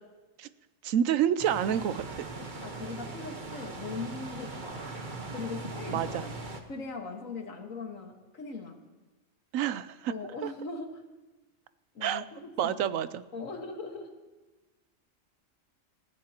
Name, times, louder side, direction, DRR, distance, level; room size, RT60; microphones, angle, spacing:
voice 1, 0.8-2.3 5.9-6.2 9.5-10.1 10.4-10.5 12.0-12.2 12.6-13.2, right 9 dB, 85° right, 14 dB, 1.1 m, -28 dB
sound 1, 1.4-6.6, right 3 dB, 40° right, 1.3 m, -40 dB
voice 2, 2.4-6.4 6.7-8.8 10.1-11.0 11.9-12.8 13.3-14.1, left 4 dB, 85° left, 2 dB, 2.1 m, -40 dB
27.0 x 14.5 x 2.9 m, 1.2 s
omnidirectional pair, 1.3 m